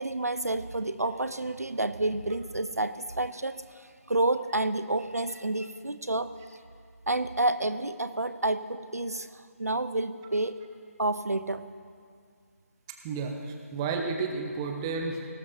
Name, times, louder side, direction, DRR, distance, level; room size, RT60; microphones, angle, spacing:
voice 1, 0.0-3.6 4.1-6.3 7.1-10.6 11.0-11.6, right 2 dB, 80° right, 12 dB, 0.6 m, -29 dB
voice 2, 13.0-15.3, right 4 dB, 15° right, 3 dB, 0.8 m, -32 dB
19.5 x 17.0 x 2.7 m, 2.2 s
figure-of-eight pair, 150°, 8 cm